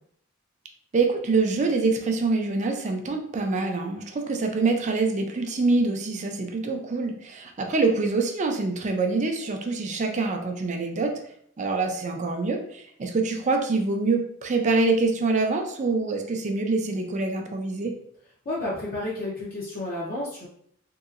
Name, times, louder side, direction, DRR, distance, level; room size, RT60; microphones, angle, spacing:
voice 1, 0.9-11.2 11.6-18.0, right 3 dB, 35° right, 4 dB, 0.4 m, -25 dB
voice 2, 18.4-20.5, left 1 dB, 45° left, -6 dB, 0.7 m, -31 dB
2.9 x 2.7 x 2.4 m, 0.64 s
head